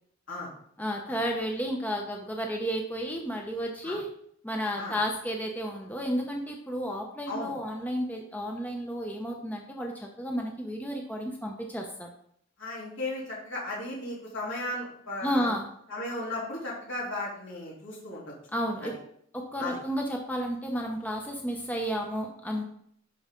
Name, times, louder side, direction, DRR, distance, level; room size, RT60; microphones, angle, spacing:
voice 1, 0.8-4.1 4.4-12.1 15.2-15.7 18.5-18.9 19.3-22.6, equal, 10° left, 1 dB, 0.7 m, -32 dB
voice 2, 12.6-15.5 15.9-18.3 18.8-18.9 19.6-19.8, left 2 dB, 70° left, -5 dB, 3.3 m, -35 dB
11.0 x 4.8 x 3.8 m, 0.67 s
head